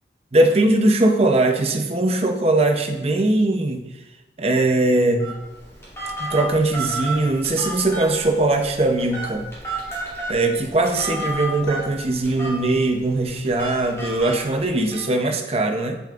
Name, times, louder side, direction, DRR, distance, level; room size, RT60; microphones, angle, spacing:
voice 1, 0.3-3.9 4.4-5.4 6.2-9.5 10.3-16.0, right 2 dB, 35° right, 4 dB, 0.6 m, -20 dB
Telephone, 5.2-15.0, right 1 dB, 15° left, 2.4 m, -32 dB
8.4 x 7.0 x 2.5 m, 1.0 s
head